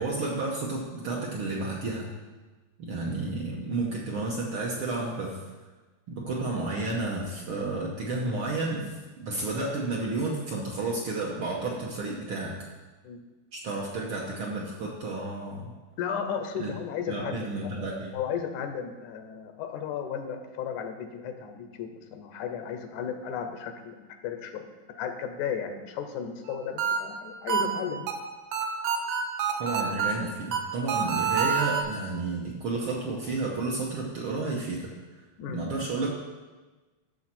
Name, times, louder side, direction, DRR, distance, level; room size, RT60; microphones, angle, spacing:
voice 1, 0.0-2.1 2.8-5.4 6.1-12.6 13.5-15.7 16.6-16.7 17.1-18.1 29.6-34.9 35.5-36.1, right 3 dB, 60° right, -2 dB, 1.4 m, -31 dB
voice 2, 16.0-17.5 18.1-24.7 25.0-28.1 35.4-35.6, left 7 dB, 85° left, 6 dB, 2.3 m, -34 dB
sound 1, 26.5-31.8, right 6 dB, 85° right, 2.5 m, -28 dB
12.0 x 6.4 x 4.4 m, 1.3 s
omnidirectional pair, 3.4 m